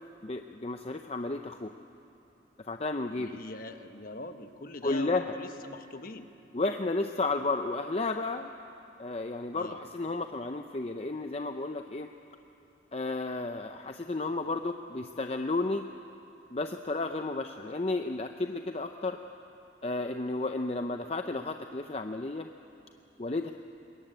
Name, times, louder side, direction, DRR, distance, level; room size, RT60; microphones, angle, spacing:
voice 1, 0.2-1.7 2.7-3.4 4.8-5.3 6.5-8.5 9.0-12.1 12.9-15.9 16.5-19.2 19.8-22.5 23.2-23.5, left 2 dB, 35° left, 6 dB, 0.6 m, -32 dB
voice 2, 3.1-6.3 9.5-9.8, left 2 dB, 50° left, 8 dB, 1.2 m, -42 dB
22.5 x 21.0 x 9.0 m, 2.8 s
head